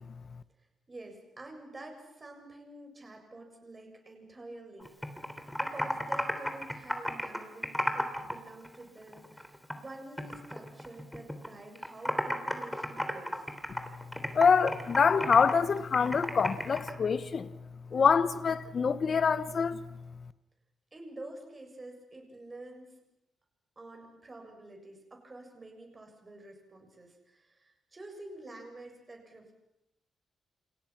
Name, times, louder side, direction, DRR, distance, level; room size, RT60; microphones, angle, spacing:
voice 1, 0.9-5.2 5.6-13.5 20.9-23.0 23.8-29.5, right 2 dB, 25° right, 7.4 m, -48 dB
Computer keyboard, 4.8-8.4 8.6-9.9 10.2-11.5 11.8-16.9, equal, 5° left, 3.3 m, -33 dB
voice 2, 14.3-17.5 17.9-19.8, left 5 dB, 45° left, 1.1 m, -25 dB
29.5 x 28.5 x 6.0 m
cardioid pair, 120°, 0 cm